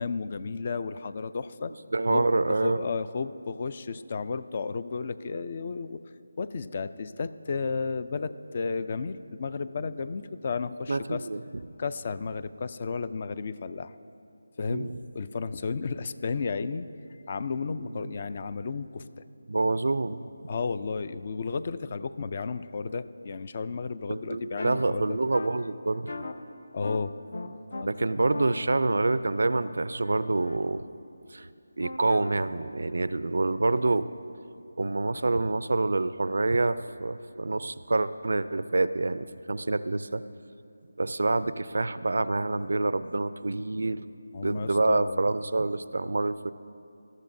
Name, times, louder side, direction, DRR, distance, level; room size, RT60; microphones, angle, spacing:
voice 1, 0.0-1.7 2.1-2.3 2.6-6.0 6.4-11.3 11.8-13.9 14.6-16.9 17.3-19.2 20.5-25.1 26.7-27.1 27.7-28.1 44.3-45.2, left 4 dB, 40° left, 14 dB, 0.4 m, -33 dB
voice 2, 1.9-2.9 10.9-11.6 14.7-15.0 17.9-18.1 19.5-20.5 24.1-26.3 27.9-30.8 31.3-31.5 31.8-34.1 34.8-40.2 41.0-44.1 44.4-46.5, right 2 dB, 70° right, 14 dB, 0.4 m, -27 dB
sound 1, 24.6-24.7 25.3-25.5 26.1-26.3 26.8-27.0 27.3-27.8 28.3-30.6 31.8-32.3, left 3 dB, 65° left, 0.8 m, -39 dB
19.5 x 13.0 x 2.6 m, 2.6 s
figure-of-eight pair, 165°, 0 cm